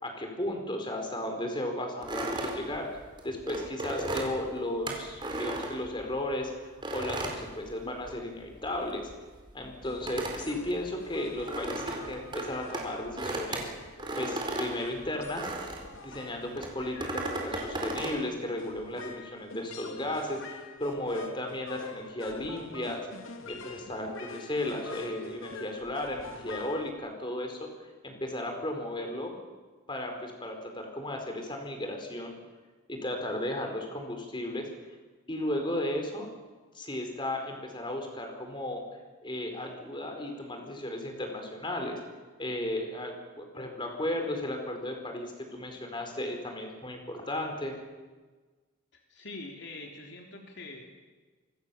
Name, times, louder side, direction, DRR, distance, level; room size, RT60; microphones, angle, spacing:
voice 1, 0.0-9.1 9.5-15.5 16.0-23.1 23.5-27.7 28.0-29.4 29.9-32.3 32.9-34.7 35.3-36.3 36.7-38.8 39.2-42.0 42.4-47.7, left 1 dB, 25° left, 4 dB, 4.7 m, -35 dB
sound 1, 2.0-6.3 6.8-8.3 8.6-16.0 16.5-18.2, right 2 dB, 25° right, 4.2 m, -36 dB
sound 2, 9.8-26.9, left 3 dB, 75° left, 2.7 m, -46 dB
voice 2, 48.9-50.9, left 2 dB, 55° left, 2 dB, 3.4 m, -44 dB
27.5 x 25.0 x 7.2 m, 1.3 s
head